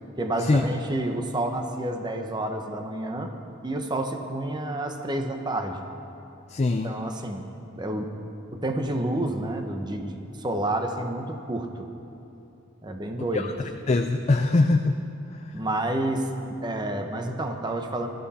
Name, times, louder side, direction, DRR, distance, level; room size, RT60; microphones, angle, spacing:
voice 1, 0.2-3.3 3.6-5.8 6.8-7.4 7.7-8.1 8.5-11.9 12.8-13.5 15.5-16.3 16.6-18.1, right 1 dB, 25° right, 5 dB, 1.0 m, -29 dB
voice 2, 6.5-6.9 13.3-15.0 15.4-15.5, left 3 dB, 35° left, 6 dB, 0.4 m, -23 dB
19.5 x 13.0 x 4.3 m, 2.9 s
head